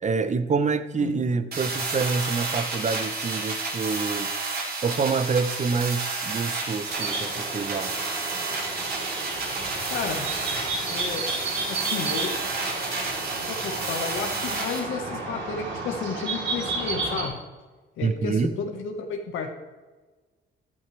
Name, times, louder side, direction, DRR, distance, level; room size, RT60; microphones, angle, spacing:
voice 1, 0.0-4.3 4.8-7.9 18.0-18.5, right 5 dB, 35° right, 13 dB, 0.8 m, -27 dB
sound 1, 1.5-14.8, right 3 dB, 50° right, 4.0 m, -31 dB
sound 2, 6.9-17.3, right 3 dB, 70° right, 3.6 m, -32 dB
voice 2, 9.9-10.3 10.9-11.2 11.7-12.4 13.5-17.4 18.0-19.5, left 5 dB, 85° left, 3 dB, 1.5 m, -32 dB
14.0 x 11.0 x 3.4 m, 1.3 s
cardioid pair, 90°, 20 cm